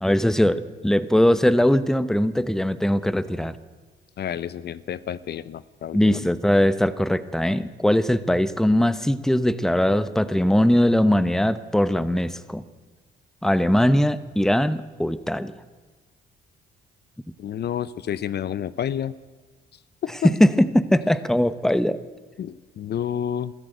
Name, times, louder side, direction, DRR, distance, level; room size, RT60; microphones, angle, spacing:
voice 1, 0.0-3.6 5.9-12.6 13.4-15.5 20.2-22.0, left 1 dB, ahead, 14 dB, 0.9 m, -20 dB
voice 2, 4.2-6.2 17.4-19.1 20.0-20.3 22.4-23.5, left 9 dB, 55° left, 17 dB, 0.6 m, -29 dB
22.0 x 13.5 x 9.2 m, 1.4 s
cardioid pair, 90°, 20 cm